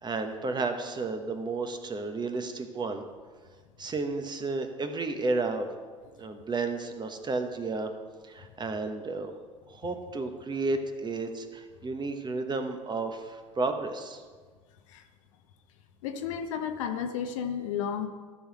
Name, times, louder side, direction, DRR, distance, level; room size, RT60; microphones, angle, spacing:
voice 1, 0.0-3.0 3.8-5.7 6.2-7.9 8.2-9.3 9.7-14.2, right 3 dB, 25° right, 6 dB, 1.2 m, -32 dB
voice 2, 16.0-18.1, left 8 dB, 70° left, 6 dB, 1.0 m, -32 dB
13.5 x 5.1 x 6.3 m, 1.5 s
figure-of-eight pair, 65°, 17 cm